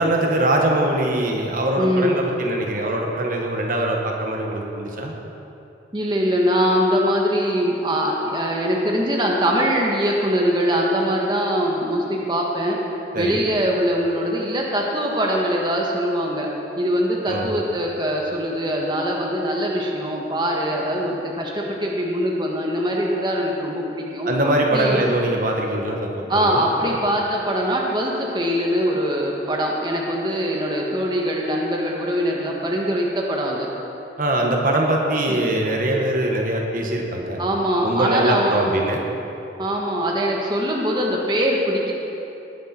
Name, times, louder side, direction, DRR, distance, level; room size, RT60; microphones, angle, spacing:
voice 1, 0.0-5.1 13.1-13.4 17.3-17.6 24.2-27.0 34.2-37.4 37.8-39.0, right 1 dB, 50° right, 1 dB, 1.4 m, -22 dB
voice 2, 1.7-2.2 5.9-12.8 13.1-16.5 16.8-25.1 26.3-33.7 35.3-35.4 35.9-36.0 37.4-38.8 39.6-41.9, equal, 25° right, -2 dB, 1.4 m, -22 dB
20.0 x 10.0 x 4.4 m, 2.9 s
head